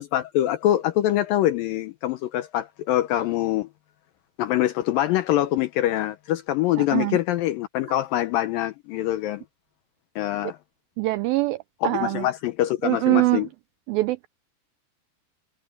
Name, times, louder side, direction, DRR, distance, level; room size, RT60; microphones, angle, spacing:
voice 1, 0.0-3.7 4.4-9.4 10.2-10.6 11.8-13.5, left 13 dB, 80° left, 2.1 m, -24 dB
voice 2, 6.8-7.2 11.0-11.6 11.8-12.3 12.8-13.5 13.9-14.3, right 20 dB, 85° right, 2.1 m, -23 dB
omnidirectional pair, 4.7 m